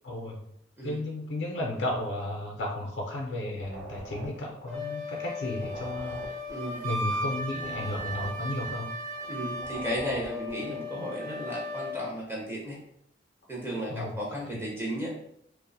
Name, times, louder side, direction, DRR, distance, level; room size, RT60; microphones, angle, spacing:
voice 1, 0.0-0.4 0.8-6.2 6.8-8.9 13.9-14.7, left 1 dB, 70° left, -1 dB, 0.4 m, -34 dB
sound 1, 3.5-5.3 5.5-9.3 9.5-10.9, right 2 dB, 70° right, 0.5 m, -45 dB
Wind instrument woodwind instrument, 4.7-12.1, left 1 dB, 50° right, 0.8 m, -36 dB
voice 2, 6.5-6.9 9.3-12.8 13.5-15.1, equal, 10° right, -3 dB, 0.4 m, -34 dB
2.4 x 2.0 x 2.6 m, 0.75 s
head